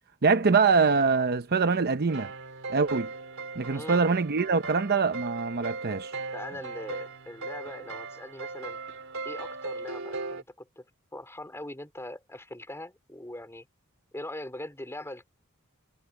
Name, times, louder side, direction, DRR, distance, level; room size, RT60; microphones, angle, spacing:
voice 1, 0.2-2.3 2.7-3.1 3.6-6.1, right 4 dB, 45° right, 0.7 m, -24 dB
sound 1, 2.1-10.4, right 3 dB, 65° right, 4.1 m, -38 dB
voice 2, 3.7-4.0 6.3-8.8 9.2-10.8 11.1-13.7 14.1-15.3, left 1 dB, 10° left, 4.4 m, -41 dB
head